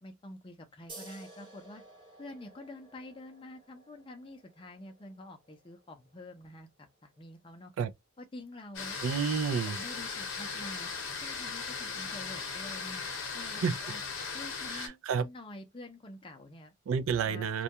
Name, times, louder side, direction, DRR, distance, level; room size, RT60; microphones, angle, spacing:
voice 1, 0.0-1.8 2.2-6.7 7.0-7.7 8.2-9.1 9.7-10.9 11.2-13.0 13.3-14.0 14.3-16.7 17.2-17.6, left 1 dB, 25° left, 0.4 m, -47 dB
sound 1, 0.9-8.0, right 2 dB, 25° right, 0.9 m, -55 dB
sound 2, 8.7-14.9, left 5 dB, 65° left, 0.7 m, -38 dB
voice 2, 9.0-9.8 13.6-13.7 14.7-15.3 16.9-17.6, right 6 dB, 80° right, 0.4 m, -30 dB
2.3 x 2.2 x 2.7 m
head